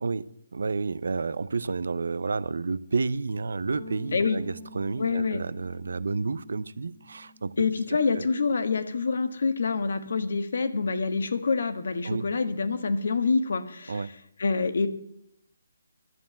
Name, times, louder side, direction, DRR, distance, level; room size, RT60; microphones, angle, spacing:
voice 1, 0.0-7.5 8.1-8.3 12.0-12.2 13.9-14.1, right 4 dB, 70° right, 0.7 m, -30 dB
sound 1, 3.7-8.3 8.5-10.0, left 1 dB, 90° left, 2.6 m, -49 dB
voice 2, 4.1-4.4 5.0-5.4 7.6-14.1 14.4-14.9, left 4 dB, 65° left, 1.4 m, -26 dB
11.0 x 7.4 x 8.8 m
hypercardioid pair, 155°, 0 cm